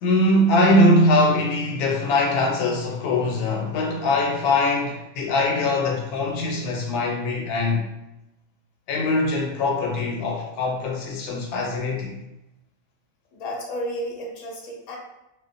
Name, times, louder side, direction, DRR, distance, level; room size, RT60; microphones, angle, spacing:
voice 1, 0.0-7.9 8.9-12.2, left 1 dB, 90° left, 1.1 m, -22 dB
voice 2, 13.3-15.0, equal, 70° left, 1.0 m, -32 dB
2.5 x 2.1 x 2.4 m
omnidirectional pair, 1.6 m